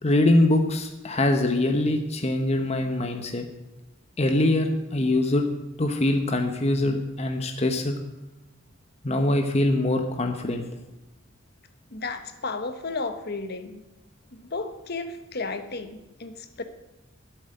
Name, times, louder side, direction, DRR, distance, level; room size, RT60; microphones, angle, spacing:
voice 1, 0.0-3.5 4.2-5.4 5.8-8.0 9.0-10.7, left 1 dB, 30° left, 5 dB, 1.0 m, -23 dB
voice 2, 11.9-13.8 14.3-16.6, left 3 dB, 55° left, 8 dB, 1.2 m, -33 dB
12.5 x 7.9 x 7.9 m, 1.0 s
head